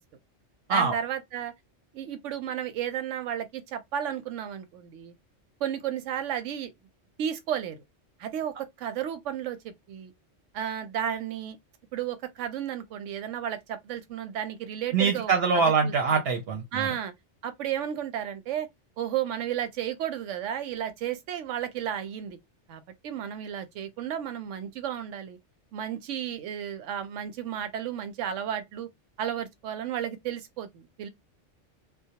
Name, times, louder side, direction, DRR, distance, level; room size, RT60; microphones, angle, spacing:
voice 1, 0.7-1.5 1.9-5.1 5.6-6.7 7.2-7.8 8.2-10.1 10.5-11.6 11.9-16.2 16.7-17.1 17.4-18.7 19.0-22.4 22.7-25.4 25.7-28.9 29.2-31.1, right 10 dB, 90° right, 0.9 m, -33 dB
voice 2, 14.9-16.9, right 5 dB, 65° right, 0.7 m, -24 dB
2.3 x 2.0 x 2.7 m
omnidirectional pair, 1.2 m